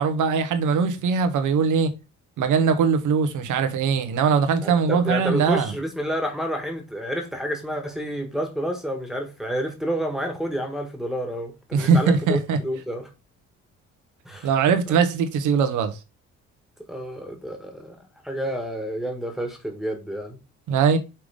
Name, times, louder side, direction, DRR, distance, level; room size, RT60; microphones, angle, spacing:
voice 1, 0.0-1.9 2.4-5.7 11.7-12.6 14.4-16.0 20.7-21.0, right 6 dB, 80° right, 1.1 m, -21 dB
voice 2, 4.6-11.5 11.8-13.1 14.2-14.9 16.9-17.9 18.2-20.4, equal, ahead, 1.6 m, -29 dB
5.7 x 3.6 x 5.0 m
cardioid pair, 90°, 30 cm